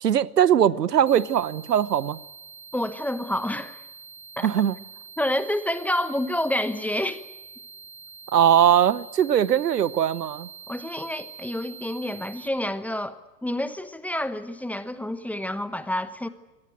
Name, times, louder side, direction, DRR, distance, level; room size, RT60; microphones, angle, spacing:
voice 1, 0.0-2.2 4.4-4.8 8.3-10.5, right 9 dB, 75° right, 21 dB, 1.0 m, -20 dB
sound 1, 1.1-12.5, right 5 dB, 90° right, 2.6 m, -45 dB
voice 2, 2.7-3.8 4.4-4.5 5.2-7.2 10.7-16.3, left 1 dB, 5° left, 13 dB, 1.0 m, -28 dB
25.0 x 18.5 x 9.3 m, 1.1 s
figure-of-eight pair, 90°, 49 cm